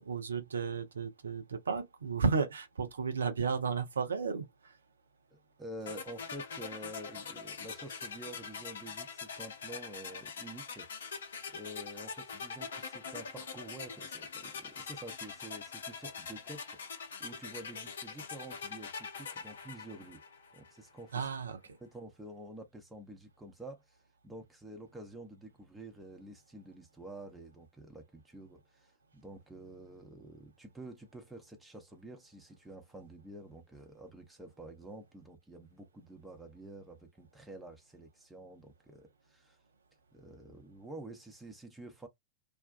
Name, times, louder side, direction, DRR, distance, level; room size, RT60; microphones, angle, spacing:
voice 1, 0.0-4.7 21.1-21.6, right 5 dB, 70° right, 0.6 m, -33 dB
voice 2, 5.3-10.9 11.5-16.8 17.2-20.2 20.5-21.3 21.8-39.6 40.1-42.1, right 1 dB, 5° right, 0.8 m, -49 dB
sound 1, 5.9-20.8, left 5 dB, 65° left, 0.7 m, -43 dB
2.5 x 2.2 x 2.3 m
figure-of-eight pair, 90°, 0 cm